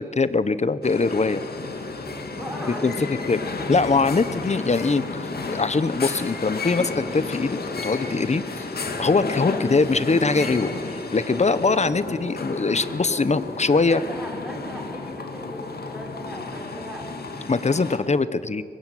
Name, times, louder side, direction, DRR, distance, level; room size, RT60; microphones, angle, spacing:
voice 1, 0.0-1.4 2.8-2.9 3.3-3.4 3.7-8.6 9.0-10.7 11.1-14.0 17.5-18.6, left 4 dB, 45° left, 14 dB, 1.1 m, -22 dB
sound 1, 0.8-18.0, left 3 dB, 90° left, 2.6 m, -32 dB
voice 2, 2.3-3.1 3.8-3.9 13.9-17.1, equal, 5° right, 0 dB, 6.7 m, -38 dB
23.0 x 21.0 x 9.3 m, 2.2 s
wide cardioid pair, 90°, 16 cm